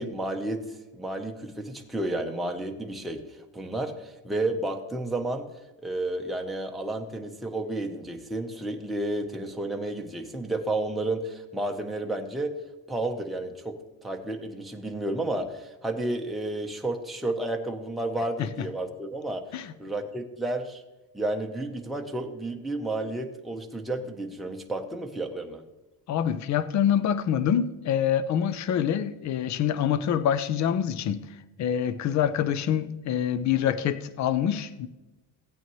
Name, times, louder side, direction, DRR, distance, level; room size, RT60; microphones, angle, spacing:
voice 1, 0.0-5.5 5.8-12.6 12.9-20.8 21.1-25.6, right 2 dB, ahead, 0.9 m, -31 dB
voice 2, 26.1-31.3 31.6-34.9, left 9 dB, 45° left, 0.7 m, -25 dB
16.0 x 8.8 x 3.1 m
cardioid pair, 110°, 39 cm